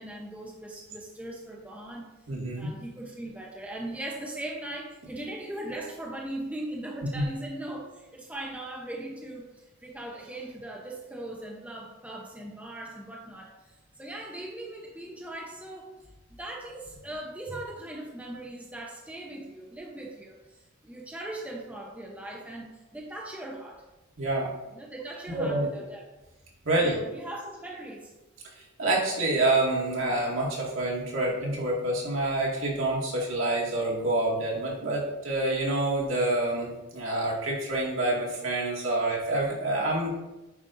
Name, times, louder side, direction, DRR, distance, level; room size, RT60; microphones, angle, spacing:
voice 1, 0.0-2.1 2.6-15.9 16.3-23.8 24.7-26.1 26.8-28.1, right 1 dB, 5° right, -2 dB, 0.8 m, -39 dB
voice 2, 2.3-2.7 7.1-7.2 24.2-24.5 25.3-25.7 26.6-27.0 28.6-40.1, right 2 dB, 75° right, -4 dB, 2.1 m, -27 dB
9.0 x 5.3 x 2.6 m, 1.0 s
head